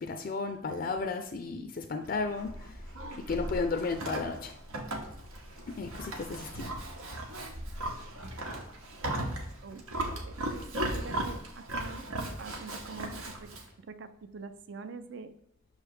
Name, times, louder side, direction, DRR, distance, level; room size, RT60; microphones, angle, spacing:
voice 1, 0.0-2.8 3.2-4.6 5.7-6.7, left 4 dB, 40° left, 5 dB, 0.4 m, -34 dB
Livestock farm animals working animals, 2.0-13.7, right 1 dB, 90° right, 1.1 m, -37 dB
voice 2, 9.6-10.1 10.5-10.6 10.9-12.0 12.4-13.5 13.9-15.3, right 4 dB, 55° right, 10 dB, 0.5 m, -44 dB
6.3 x 3.3 x 4.9 m, 0.75 s
head